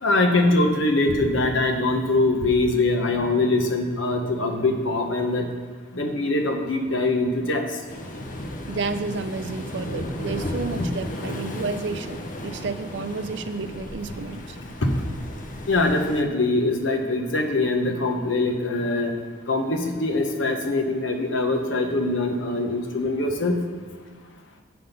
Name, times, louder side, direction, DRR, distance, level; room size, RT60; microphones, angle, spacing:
voice 1, 0.0-5.4 5.9-7.6 10.7-10.9 14.8-15.0 15.7-19.1 19.5-23.6, left 2 dB, 80° left, 4 dB, 1.0 m, -23 dB
Waves surf, 7.9-16.2, left 1 dB, 40° left, 0.7 m, -34 dB
voice 2, 8.7-12.2 12.4-14.6, right 4 dB, 65° right, 10 dB, 0.5 m, -31 dB
7.6 x 5.9 x 5.3 m, 1.5 s
head